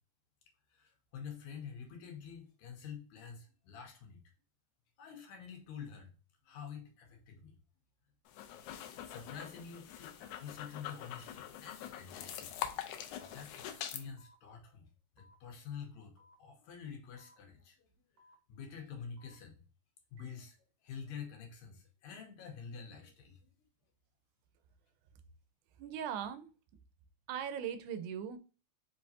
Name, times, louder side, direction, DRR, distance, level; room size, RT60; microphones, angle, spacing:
voice 1, 0.7-4.2 5.0-6.1 6.4-7.6 8.7-12.6 13.2-14.9 15.1-17.9 18.5-19.6 20.1-20.6 20.8-23.5, left 7 dB, 75° left, 3 dB, 2.2 m, -48 dB
sound 1, 8.3-14.0, left 11 dB, 90° left, 2.0 m, -44 dB
sound 2, 12.2-12.3 13.2-13.3 14.2-14.3 15.2-15.3 16.2-16.3 17.2-17.3 18.2-18.3 19.2-19.3 20.2-20.3, left 1 dB, 60° right, 1.7 m, -63 dB
voice 2, 25.8-26.5 27.3-28.4, right 8 dB, 85° right, 10 dB, 2.1 m, -39 dB
5.1 x 3.2 x 2.7 m, 0.36 s
omnidirectional pair, 3.4 m